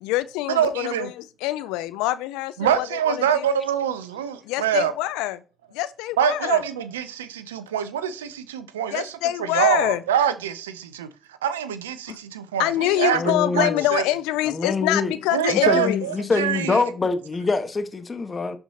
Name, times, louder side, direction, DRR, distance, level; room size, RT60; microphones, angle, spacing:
voice 1, 0.0-3.5 4.5-5.4 5.7-6.6 8.9-10.0 12.1-12.2 12.6-16.0, left 15 dB, 80° left, 0.3 m, -25 dB
voice 2, 0.5-1.1 2.6-4.9 6.2-9.1 9.4-11.1 11.4-14.0 15.3-16.8, right 9 dB, 90° right, 0.5 m, -25 dB
voice 3, 13.1-13.8 14.5-15.1 15.5-18.6, left 3 dB, 35° left, 1.3 m, -25 dB
11.0 x 4.4 x 2.8 m
hypercardioid pair, 45°, 0 cm